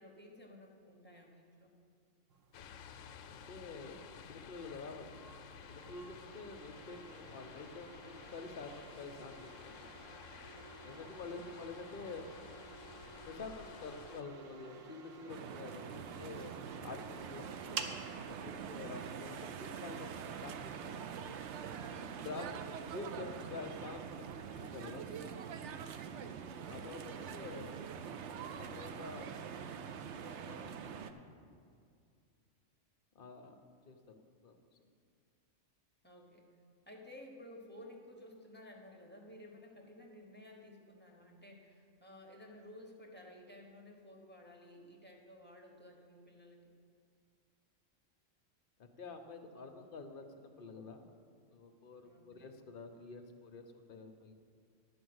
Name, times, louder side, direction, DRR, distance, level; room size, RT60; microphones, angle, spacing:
voice 1, 0.0-1.8 10.9-11.4 27.6-28.0 36.0-36.5 36.9-46.7 52.0-52.6, left 1 dB, 10° left, -1 dB, 1.1 m, -55 dB
sound 1, 2.3-18.0, right 5 dB, 85° right, 1.1 m, -52 dB
sound 2, 2.5-14.2, left 7 dB, 85° left, 0.9 m, -53 dB
voice 2, 3.3-4.0 4.2-5.3 5.7-9.9 10.8-12.2 13.3-16.5 16.8-18.0 18.4-21.1 22.2-25.0 26.7-27.9 28.5-29.3 30.1-31.2 33.1-34.6 48.8-51.0 51.5-54.3, left 3 dB, 50° left, 5 dB, 0.8 m, -48 dB
sound 3, 15.3-31.1, right 7 dB, 70° right, 0.8 m, -44 dB
11.0 x 5.2 x 7.9 m, 2.3 s
omnidirectional pair, 1.3 m